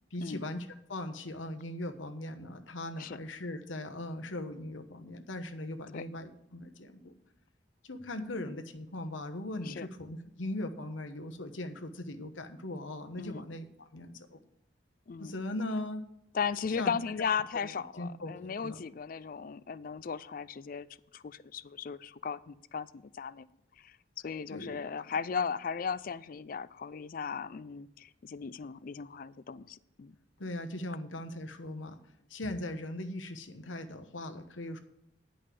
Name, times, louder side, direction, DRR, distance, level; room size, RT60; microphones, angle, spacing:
voice 1, 0.1-7.1 7.8-14.4 15.2-16.1 16.8-16.9 17.6-17.7 18.0-18.8 24.5-24.7 30.4-32.0 32.3-34.8, left 1 dB, 80° left, 1.1 m, -39 dB
voice 2, 16.3-20.9 21.1-23.5 23.8-24.0 24.2-30.1, left 6 dB, 45° left, 0.4 m, -36 dB
10.5 x 5.4 x 8.5 m
head